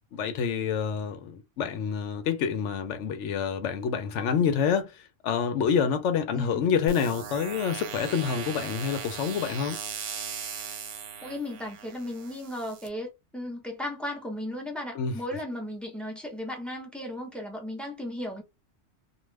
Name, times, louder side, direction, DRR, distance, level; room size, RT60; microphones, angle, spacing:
voice 1, 0.1-9.8 14.9-15.2, left 7 dB, 80° left, 0.9 m, -27 dB
voice 2, 6.3-6.6 11.2-18.4, left 1 dB, ahead, 0.7 m, -35 dB
sound 1, 6.9-12.9, right 7 dB, 65° right, 0.8 m, -38 dB
2.4 x 2.3 x 3.2 m
omnidirectional pair, 1.2 m